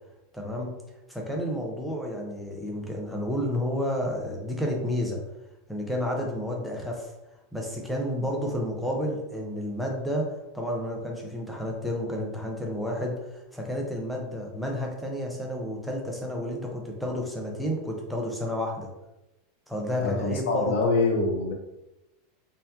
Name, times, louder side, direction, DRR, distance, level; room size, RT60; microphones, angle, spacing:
voice 1, 0.3-0.7 1.1-5.2 5.7-7.1 7.5-18.9 19.7-20.8, equal, ahead, -1 dB, 0.8 m, -31 dB
voice 2, 20.0-21.5, left 3 dB, 60° left, 1 dB, 0.7 m, -25 dB
4.2 x 2.6 x 2.4 m, 0.96 s
figure-of-eight pair, 85°, 0 cm